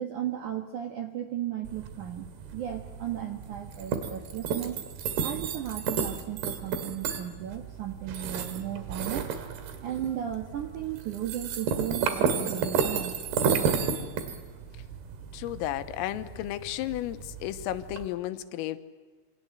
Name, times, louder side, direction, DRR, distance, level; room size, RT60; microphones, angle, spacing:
voice 1, 0.0-4.8 5.2-9.4 9.8-13.1, right 11 dB, 90° right, 5 dB, 1.7 m, -35 dB
sound 1, 1.6-18.1, right 6 dB, 60° right, 3.5 m, -32 dB
voice 2, 15.3-18.8, left 14 dB, 85° left, 10 dB, 3.7 m, -33 dB
27.5 x 25.5 x 8.0 m, 1.5 s
omnidirectional pair, 5.9 m